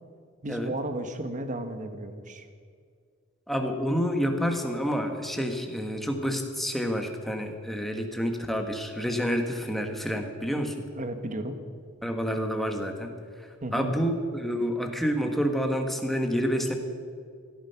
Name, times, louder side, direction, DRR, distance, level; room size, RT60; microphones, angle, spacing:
voice 1, 0.4-2.5 11.0-11.6 13.6-13.9, right 1 dB, 35° right, 8 dB, 1.3 m, -34 dB
voice 2, 3.5-10.7 12.0-13.1 13.7-16.7, equal, ahead, 4 dB, 1.4 m, -28 dB
17.0 x 13.0 x 5.8 m, 2.1 s
head